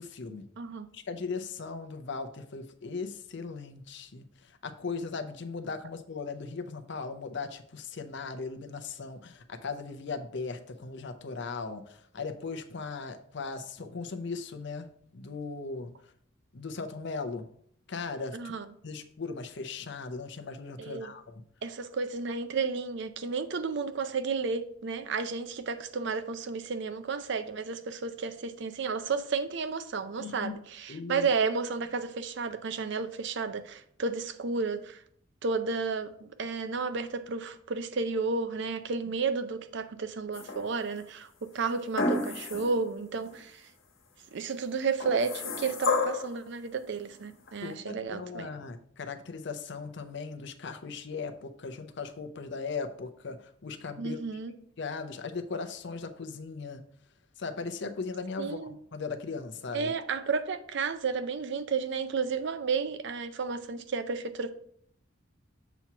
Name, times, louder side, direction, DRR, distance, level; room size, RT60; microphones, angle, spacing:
voice 1, 0.0-0.4 0.9-14.9 15.1-15.9 16.5-17.4 17.9-18.5 18.8-21.3 30.2-30.5 30.9-31.3 47.6-54.2 54.8-56.8 57.4-59.9, left 4 dB, 60° left, 8 dB, 0.7 m, -38 dB
voice 2, 0.6-0.9 18.3-18.7 20.8-21.1 21.6-35.0 35.4-43.7 44.3-48.5 54.0-54.5 58.4-58.7 59.7-64.5, right 4 dB, 60° right, 10 dB, 0.5 m, -32 dB
sound 1, 40.3-41.0 42.0-42.8 43.3-43.4 45.0-46.4 47.5-47.6, left 3 dB, 80° left, 1.3 m, -30 dB
7.0 x 2.9 x 5.9 m, 0.64 s
head